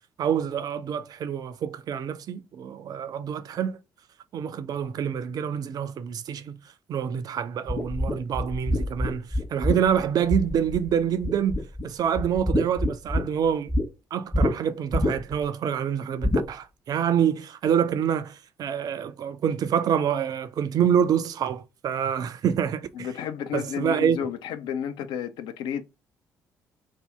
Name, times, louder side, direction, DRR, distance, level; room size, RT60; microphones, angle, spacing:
voice 1, 0.2-3.8 4.3-6.5 6.9-13.7 14.1-23.1 23.5-24.2, right 8 dB, 45° right, 0.4 m, -26 dB
sound 1, 7.7-10.9 11.2-11.8 12.1-13.8 14.3-14.5 14.9-15.4 16.2-16.5, left 1 dB, 20° left, 1.1 m, -25 dB
voice 2, 23.0-25.8, left 8 dB, 55° left, 0.4 m, -31 dB
2.7 x 2.4 x 3.3 m
figure-of-eight pair, 45°, 9 cm